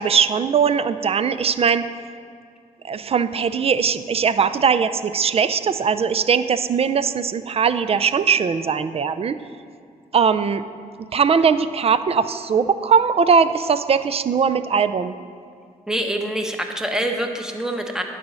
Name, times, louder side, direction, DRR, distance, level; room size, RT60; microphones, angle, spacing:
voice 1, 0.0-1.9 2.8-9.4 10.1-10.6 11.1-15.1 17.1-17.2, right 6 dB, 40° right, 12 dB, 0.4 m, -20 dB
voice 2, 15.9-18.0, right 1 dB, 5° right, 3 dB, 1.0 m, -25 dB
9.3 x 4.1 x 6.2 m, 2.3 s
cardioid pair, 60°, 15 cm